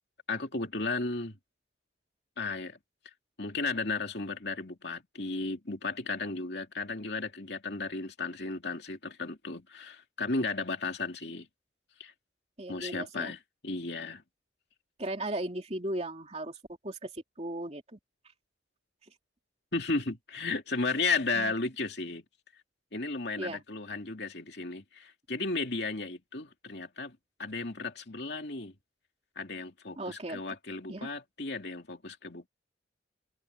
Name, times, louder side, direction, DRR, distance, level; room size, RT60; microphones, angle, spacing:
voice 1, 0.3-1.4 2.4-2.8 3.4-11.5 12.0-12.1 12.7-14.2 19.7-22.2 22.9-28.7 29.4-32.5, left 3 dB, 60° left, 2.9 m, -34 dB
voice 2, 12.6-13.3 15.0-16.6 16.8-18.0 21.3-21.5 23.4-23.6 30.0-30.4 30.9-31.1, right 1 dB, 35° right, 2.9 m, -37 dB
head